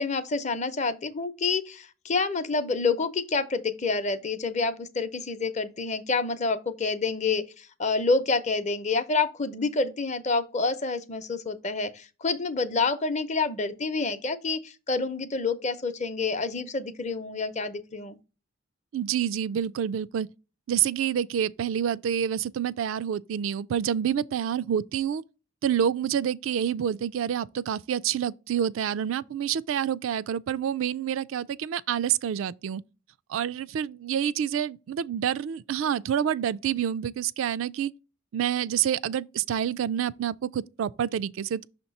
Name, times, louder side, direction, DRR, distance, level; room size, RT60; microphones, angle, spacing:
voice 1, 0.0-18.2, left 4 dB, 35° left, 0.7 m, -28 dB
voice 2, 18.9-20.3 20.7-25.2 25.6-32.8 33.3-37.9 38.3-41.7, right 9 dB, 75° right, 0.3 m, -28 dB
6.2 x 2.9 x 5.3 m
head